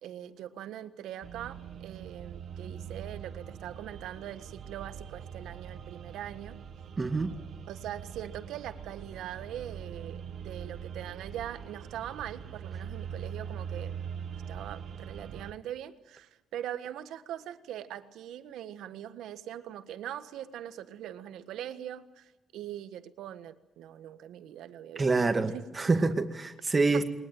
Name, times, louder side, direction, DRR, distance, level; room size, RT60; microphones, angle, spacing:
voice 1, 0.0-6.6 7.7-14.0 14.5-25.6 26.9-27.0, right 11 dB, 85° right, 11 dB, 1.5 m, -42 dB
sound 1, 1.2-15.5, right 7 dB, 60° right, 1.3 m, -42 dB
voice 2, 7.0-7.4 25.0-27.0, right 3 dB, 30° right, 6 dB, 2.2 m, -26 dB
21.5 x 20.5 x 9.1 m, 0.96 s
cardioid pair, 90°, 0 cm